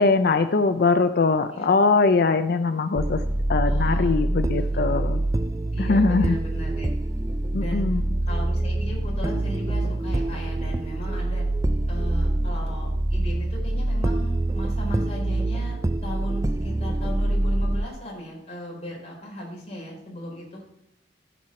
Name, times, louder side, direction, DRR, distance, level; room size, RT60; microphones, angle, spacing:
voice 1, 0.0-3.2 3.5-5.2 5.8-6.4 7.5-8.0, left 3 dB, 60° left, 10 dB, 0.5 m, -21 dB
sound 1, 3.0-17.9, right 1 dB, 20° right, 0.4 m, -25 dB
voice 2, 3.6-4.2 4.5-4.8 5.7-6.9 7.6-7.9 8.3-11.4 11.9-20.6, left 1 dB, 35° left, -2 dB, 4.2 m, -37 dB
14.0 x 5.8 x 4.3 m, 0.84 s
head